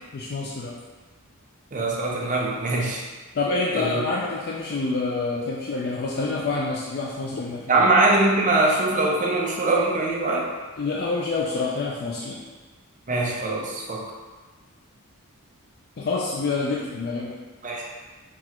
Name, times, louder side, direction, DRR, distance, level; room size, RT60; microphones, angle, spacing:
voice 1, 0.1-0.7 3.3-7.8 10.8-12.4 16.0-17.3, left 3 dB, 50° left, -3 dB, 0.4 m, -27 dB
voice 2, 1.7-3.0 3.7-4.0 7.7-10.5 13.1-14.0 17.6-17.9, right 2 dB, 35° right, -2 dB, 0.6 m, -22 dB
6.0 x 2.4 x 2.9 m, 1.3 s
head